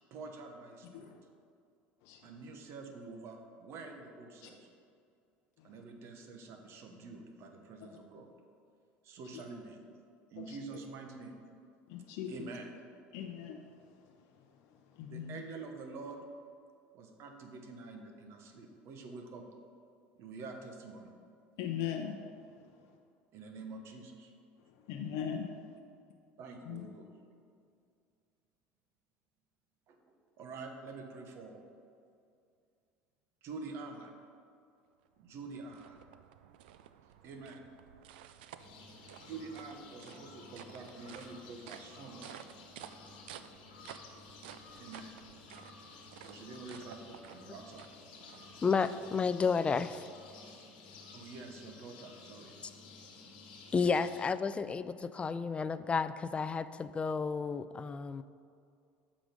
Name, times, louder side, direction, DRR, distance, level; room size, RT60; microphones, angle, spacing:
voice 1, 0.1-1.1 2.2-4.7 5.6-8.3 9.0-9.8 10.3-11.3 12.3-12.7 15.1-16.2 16.9-19.4 20.1-21.1 23.3-24.3 26.4-27.1 29.9-31.6 33.4-34.1 35.2-36.0 37.2-37.6 39.2-42.3 44.8-45.1 46.2-47.9 51.1-52.6, right 3 dB, 55° right, 4 dB, 1.1 m, -47 dB
voice 2, 2.0-2.3 4.4-4.5 5.6-5.8 7.8-8.0 9.3-9.4 10.4-10.8 11.9-12.3 13.1-15.4 21.6-23.0 24.6-25.8 26.6-26.9, left 8 dB, 70° left, 3 dB, 0.6 m, -42 dB
sound 1, 35.0-49.5, right 10 dB, 85° right, 0.3 m, -54 dB
sound 2, 38.6-54.3, left 4 dB, 85° left, 1.2 m, -53 dB
voice 3, 48.6-50.0 53.7-58.2, left 5 dB, 20° left, 13 dB, 0.3 m, -31 dB
7.5 x 5.0 x 5.2 m, 2.4 s
supercardioid pair, 95°, 5 cm